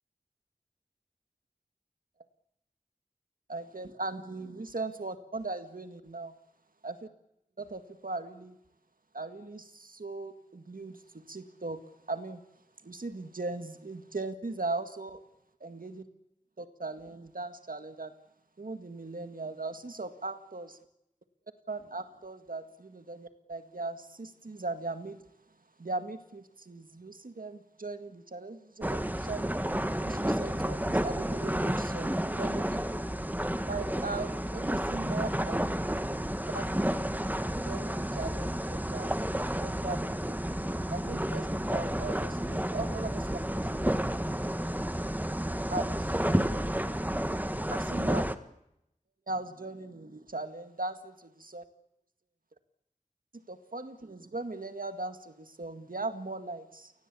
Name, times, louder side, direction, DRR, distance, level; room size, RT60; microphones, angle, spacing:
voice 1, 3.5-6.3 6.8-7.1 7.6-8.6 9.1-11.8 12.1-12.4 12.8-15.2 15.6-16.0 16.6-18.1 18.6-20.8 21.7-25.2 25.8-29.5 30.0-33.1 33.7-35.7 36.5-37.1 37.6-39.1 39.4-40.4 40.9-43.3 43.6-43.7 45.7-46.6 47.6-48.2 49.3-51.6 53.5-56.9, right 3 dB, 80° right, 8 dB, 1.9 m, -39 dB
sound 1, 28.8-48.4, right 1 dB, 10° right, 1.5 m, -31 dB
29.0 x 19.0 x 8.5 m, 0.83 s
wide cardioid pair, 40°, 14 cm